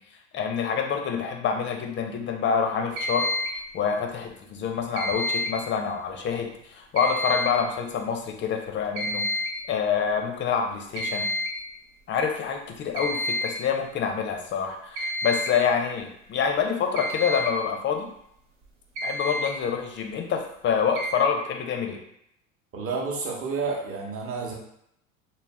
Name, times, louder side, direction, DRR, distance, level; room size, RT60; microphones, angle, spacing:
voice 1, 0.3-3.3 3.7-9.3 9.7-11.3 12.1-18.1 19.0-22.0, left 6 dB, 30° left, 3 dB, 0.5 m, -27 dB
sound 1, 3.0-3.7 4.9-5.7 7.0-7.7 9.0-9.6 11.0-11.6 13.0-13.6 15.0-15.6 17.0-17.6 18.6-18.7 19.0-19.5 21.0-21.1, left 1 dB, 80° right, 0.8 m, -29 dB
voice 2, 22.7-24.5, right 4 dB, 35° right, -2 dB, 0.8 m, -30 dB
2.4 x 2.0 x 3.3 m, 0.74 s
hypercardioid pair, 80°, 41 cm